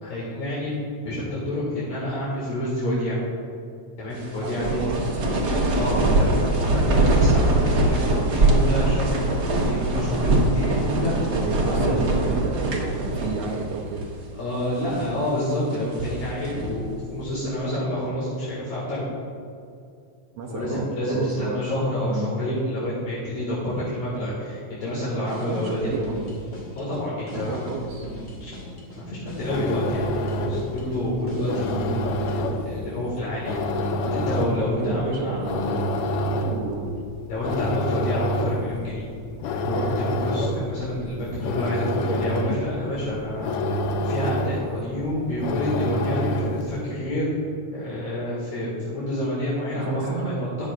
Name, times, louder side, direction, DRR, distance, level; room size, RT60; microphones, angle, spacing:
voice 1, 0.0-0.8 1.0-3.2 4.0-4.9 5.7-9.1 9.5-11.3 11.7-11.9 14.3-19.1 20.5-25.9 26.7-27.7 28.4-28.5 28.9-33.6 34.0-35.4 37.3-39.1 39.6-43.6 44.0-47.3 47.7-50.7, left 1 dB, 65° left, -8 dB, 3.1 m, -28 dB
sound 1, 4.2-13.7 14.0-14.1 14.7-15.2 15.7-16.8, right 2 dB, 45° right, 1.5 m, -22 dB
voice 2, 4.4-5.5 6.1-6.3 11.3-14.0 20.3-21.6 22.1-22.3 25.5-26.2 27.3-28.1 34.8-35.8 36.5-37.0 49.7-50.3, right 4 dB, 70° right, 0 dB, 1.6 m, -31 dB
sound 2, 25.2-32.6, equal, 45° left, 2.1 m, -40 dB
sound 3, 29.2-46.8, left 1 dB, 80° left, 1.3 m, -28 dB
13.0 x 9.4 x 2.5 m, 2.5 s
omnidirectional pair, 3.3 m